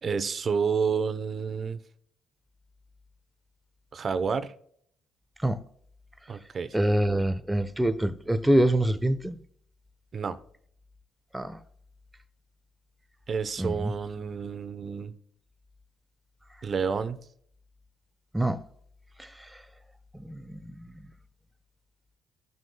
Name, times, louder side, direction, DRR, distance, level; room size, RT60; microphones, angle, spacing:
voice 1, 0.0-1.8 3.9-4.5 6.3-6.7 10.1-10.4 13.3-15.1 16.6-17.2, right 6 dB, 45° right, 0.9 m, -29 dB
voice 2, 6.7-9.4 11.3-11.6 13.6-13.9 18.3-18.6 20.3-20.9, right 1 dB, 10° right, 1.0 m, -25 dB
15.5 x 6.2 x 2.3 m
supercardioid pair, 70°, 0 cm